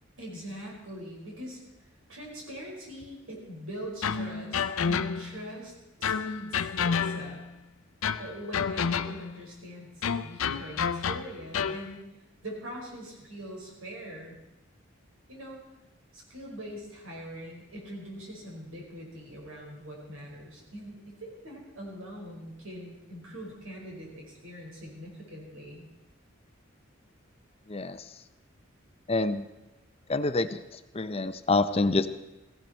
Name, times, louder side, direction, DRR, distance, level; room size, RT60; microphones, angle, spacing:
voice 1, 0.2-1.6 2.1-5.7 6.0-7.4 8.2-9.9 10.2-12.0 12.4-14.4 15.3-15.6 16.1-25.9, equal, 85° right, -1 dB, 5.1 m, -42 dB
sound 1, 4.0-5.4 6.0-7.5 8.0-9.4 10.0-11.9, left 6 dB, 85° left, 0.5 m, -30 dB
voice 2, 27.7-28.0 29.1-29.5 30.1-32.1, left 3 dB, 30° left, 11 dB, 0.5 m, -27 dB
17.0 x 15.5 x 4.4 m, 0.97 s
head